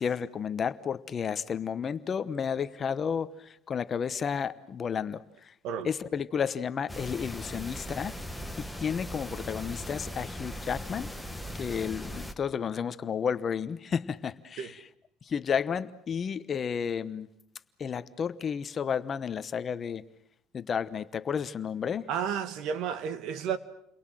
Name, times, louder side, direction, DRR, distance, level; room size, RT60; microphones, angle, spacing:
voice 1, 0.0-3.3 3.7-5.2 5.8-8.1 8.6-11.1 11.6-14.8 15.3-17.3 17.8-20.0 20.5-22.0, left 7 dB, 30° left, 1.0 m, -32 dB
sound 1, 6.9-12.3, equal, ahead, 1.3 m, -39 dB
voice 2, 22.1-23.6, right 8 dB, 65° right, 2.0 m, -32 dB
30.0 x 22.5 x 7.7 m
cardioid pair, 140°, 0 cm